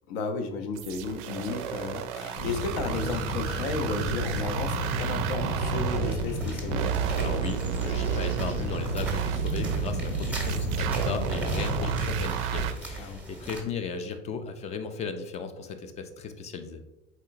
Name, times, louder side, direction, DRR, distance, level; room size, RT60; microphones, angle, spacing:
voice 1, 0.1-7.0 12.9-13.2, left 3 dB, 60° left, 7 dB, 0.7 m, -33 dB
sound 1, 0.7-6.2 6.7-12.7, right 10 dB, 50° right, 0.4 m, -32 dB
Bird vocalization bird call bird song, 2.3-12.2, equal, 85° left, 1.0 m, -32 dB
sound 2, 6.0-13.6, right 1 dB, 5° right, 0.8 m, -41 dB
voice 2, 7.2-16.8, left 5 dB, 20° left, 8 dB, 0.3 m, -36 dB
4.3 x 3.6 x 2.5 m, 0.92 s
figure-of-eight pair, 75°, 35 cm